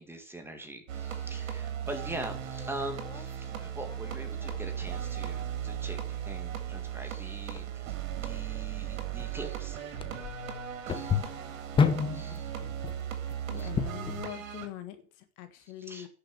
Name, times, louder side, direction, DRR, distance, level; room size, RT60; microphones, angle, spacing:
voice 1, 0.0-10.0 10.9-11.2 12.1-12.5 13.5-13.7 15.8-16.1, right 1 dB, 5° right, 1.9 m, -43 dB
sound 1, 0.9-14.7, right 9 dB, 70° right, 3.3 m, -37 dB
sound 2, 2.5-14.2, left 6 dB, 15° left, 0.9 m, -35 dB
voice 2, 13.4-16.1, left 13 dB, 45° left, 1.7 m, -43 dB
11.0 x 6.7 x 7.8 m
hypercardioid pair, 130°, 40 cm